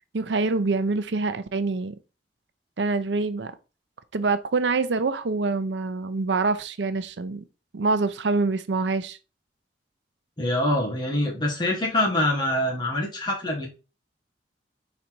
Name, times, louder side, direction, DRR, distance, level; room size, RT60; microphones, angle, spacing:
voice 1, 0.1-1.9 2.8-3.5 4.1-7.4 7.7-9.2, right 3 dB, 90° right, 0.6 m, -25 dB
voice 2, 10.4-13.7, left 1 dB, 25° left, 1.3 m, -25 dB
5.2 x 4.1 x 4.5 m
head